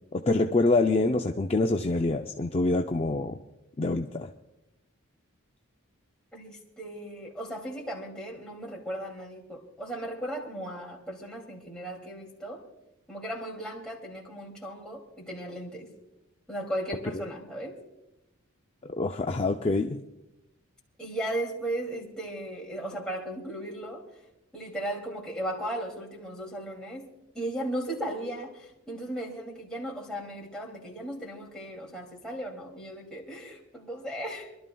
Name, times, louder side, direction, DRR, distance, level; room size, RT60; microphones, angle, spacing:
voice 1, 0.1-3.4 3.8-4.3 18.9-20.0, left 2 dB, 30° left, 4 dB, 0.4 m, -26 dB
voice 2, 6.3-12.6 13.1-15.9 16.5-17.8 21.0-24.0 24.5-27.1 27.3-34.5, right 1 dB, 5° left, -3 dB, 2.5 m, -36 dB
28.0 x 12.5 x 2.3 m, 0.93 s
head